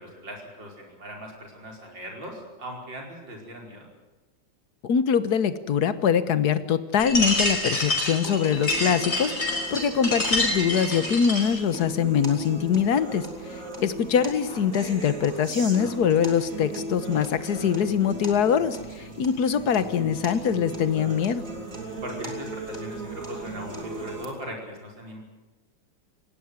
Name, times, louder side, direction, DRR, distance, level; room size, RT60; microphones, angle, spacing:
voice 1, 0.0-3.9 13.6-13.7 19.0-19.2 21.9-25.2, equal, 80° right, 1 dB, 5.7 m, -40 dB
voice 2, 4.8-21.4, left 7 dB, 60° left, 13 dB, 1.6 m, -23 dB
sound 1, 7.0-11.6, left 2 dB, 35° left, 5.7 m, -27 dB
sound 2, 8.2-24.3, right 2 dB, 45° right, 3.8 m, -37 dB
19.5 x 16.5 x 9.6 m, 1.1 s
omnidirectional pair, 2.0 m